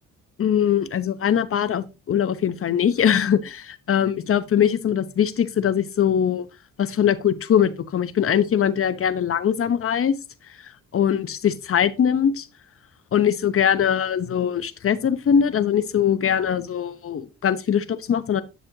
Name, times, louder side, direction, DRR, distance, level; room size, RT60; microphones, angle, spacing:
voice 1, 0.4-6.5 6.8-10.1 10.9-12.5 13.1-18.4, left 8 dB, 45° left, 0.9 m, -21 dB
10.5 x 6.4 x 2.8 m
cardioid pair, 90°, 30 cm